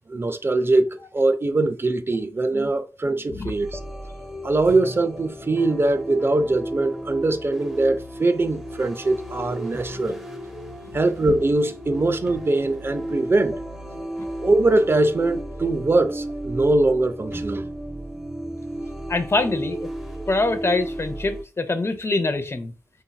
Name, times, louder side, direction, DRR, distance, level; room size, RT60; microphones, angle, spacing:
voice 1, 0.1-3.8 4.4-10.2 10.9-13.5 14.4-17.6, right 2 dB, 35° right, 0.4 m, -22 dB
sound 1, 3.5-21.4, right 1 dB, 5° right, 0.7 m, -34 dB
voice 2, 19.1-19.9 20.3-22.7, left 2 dB, 35° left, 0.5 m, -24 dB
2.9 x 2.6 x 2.2 m
cardioid pair, 45°, 7 cm